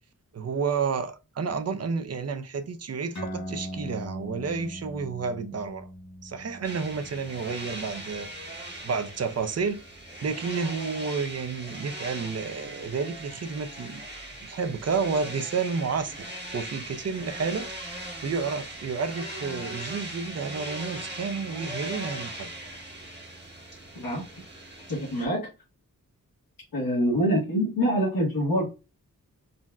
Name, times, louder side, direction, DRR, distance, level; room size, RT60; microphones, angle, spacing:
voice 1, 0.3-5.9 6.2-8.3 8.8-9.8 10.2-14.0 14.4-16.3 16.5-22.5, right 5 dB, 45° right, 0.5 m, -30 dB
sound 1, 3.1-10.1, equal, 50° left, 0.9 m, -41 dB
sound 2, 6.6-25.3, right 1 dB, 30° right, 1.1 m, -40 dB
voice 2, 23.9-24.3 24.9-25.5 26.7-28.7, equal, 75° left, 1.0 m, -25 dB
3.9 x 2.1 x 2.3 m
wide cardioid pair, 60°, 35 cm